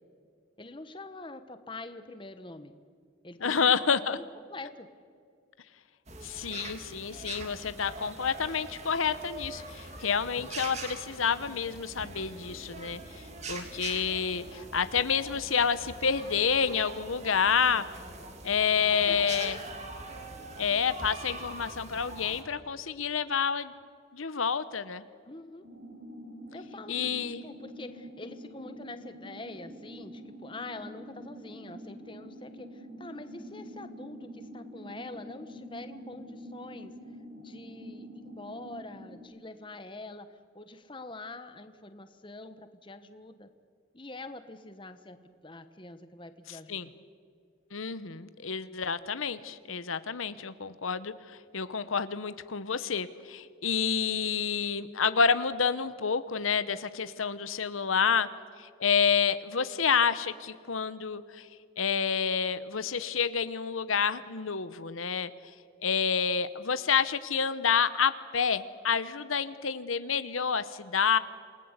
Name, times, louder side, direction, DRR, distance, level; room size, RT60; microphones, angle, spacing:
voice 1, 0.6-2.7 3.2-3.7 4.0-4.2 4.5-4.9 18.7-19.6 25.2-25.7 26.5-36.9 37.4-43.5 43.9-45.2 45.4-46.9, left 2 dB, 25° left, 9 dB, 1.2 m, -45 dB
voice 2, 3.4-4.2 6.2-13.0 13.5-17.8 18.4-19.6 20.6-23.7 24.1-25.0 26.9-27.5 46.5-46.9 47.7-58.3 58.6-61.5 61.8-65.3 65.8-71.2, left 6 dB, 90° left, 13 dB, 1.0 m, -29 dB
sound 1, 6.1-22.4, right 2 dB, 35° right, 2.5 m, -43 dB
sound 2, 25.6-39.2, equal, 65° right, 6.4 m, -46 dB
28.0 x 19.5 x 8.2 m, 2.2 s
head